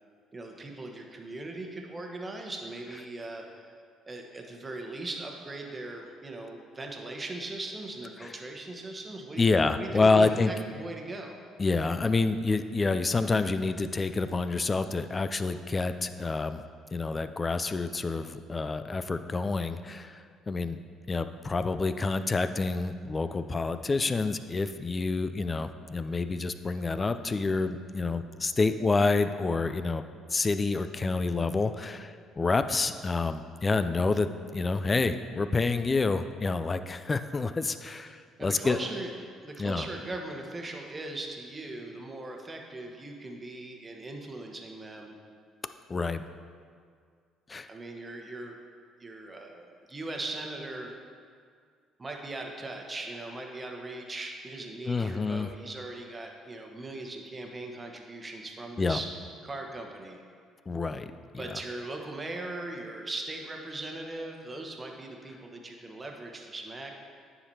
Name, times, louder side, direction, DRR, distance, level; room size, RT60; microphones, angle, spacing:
voice 1, 0.3-3.7 4.1-11.4 38.4-39.1 39.4-45.2 47.7-48.6 49.0-51.0 52.0-59.1 59.4-60.2 61.4-66.9, right 2 dB, 25° right, 2 dB, 1.1 m, -39 dB
voice 2, 9.4-10.5 11.6-16.6 16.9-20.8 21.1-30.0 30.3-38.8 39.6-39.9 45.9-46.2 47.5-47.7 54.9-55.5 58.8-59.0 60.7-61.1 61.5-61.6, left 3 dB, 30° left, 11 dB, 0.4 m, -28 dB
9.6 x 5.0 x 2.8 m, 2.1 s
hypercardioid pair, 55°, 0 cm